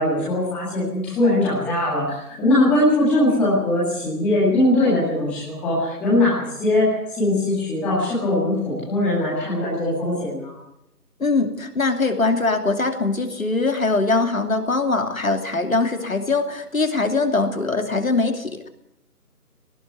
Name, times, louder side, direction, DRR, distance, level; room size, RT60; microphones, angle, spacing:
voice 1, 0.0-10.5, left 1 dB, 5° left, -8 dB, 2.0 m, -21 dB
voice 2, 11.2-18.7, left 3 dB, 60° left, 6 dB, 2.8 m, -22 dB
18.5 x 15.5 x 9.5 m, 0.83 s
figure-of-eight pair, 160°, 46 cm